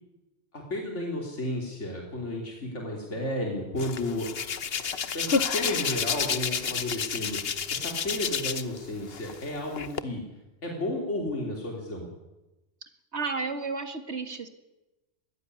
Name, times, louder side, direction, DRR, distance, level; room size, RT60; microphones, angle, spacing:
voice 1, 0.5-4.3 4.8-4.9 5.1-10.2 10.6-12.1, left 1 dB, 85° left, 0 dB, 3.6 m, -33 dB
Hands, 3.8-8.8 9.1-10.0, left 6 dB, 60° left, 1.2 m, -30 dB
voice 2, 13.1-14.5, right 4 dB, 70° right, 8 dB, 2.2 m, -32 dB
21.5 x 15.5 x 9.7 m, 1.1 s
omnidirectional pair, 1.2 m